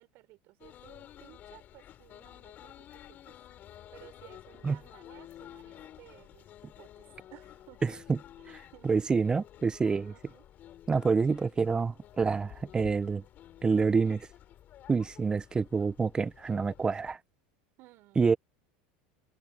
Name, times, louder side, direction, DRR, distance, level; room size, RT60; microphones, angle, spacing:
voice 1, 0.0-3.4 3.7-7.1 7.3-8.1 8.4-8.9 10.1-10.4 12.5-12.6 17.8-18.4, right 19 dB, 55° right, 6.7 m, -57 dB
sound 1, 0.6-17.1, left 12 dB, 40° left, 4.1 m, -52 dB
voice 2, 7.8-8.2 8.8-10.1 10.9-13.2 13.6-14.3 14.9-17.2 18.2-18.4, right 4 dB, 20° right, 0.9 m, -27 dB
supercardioid pair, 115°, 5 cm